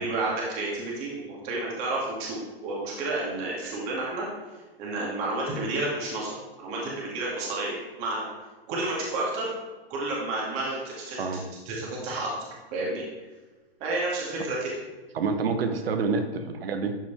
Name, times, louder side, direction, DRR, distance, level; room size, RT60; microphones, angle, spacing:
voice 1, 0.0-4.3 4.8-8.3 8.7-9.5 9.9-12.3 12.7-13.0 13.8-14.7, right 2 dB, 40° right, -4 dB, 2.4 m, -31 dB
voice 2, 15.1-17.0, right 4 dB, 65° right, 8 dB, 1.1 m, -27 dB
12.5 x 5.3 x 3.5 m, 1.2 s
hypercardioid pair, 130°, 32 cm